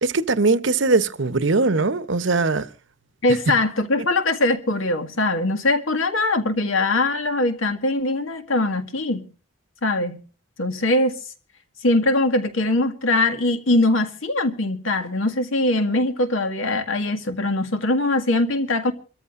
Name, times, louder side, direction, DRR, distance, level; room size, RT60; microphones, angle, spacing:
voice 1, 0.0-2.7, right 3 dB, 65° right, 0.9 m, -20 dB
voice 2, 3.2-9.3 9.8-10.2 10.6-11.2 11.8-18.9, left 2 dB, 80° left, 1.9 m, -22 dB
27.5 x 14.0 x 2.5 m
head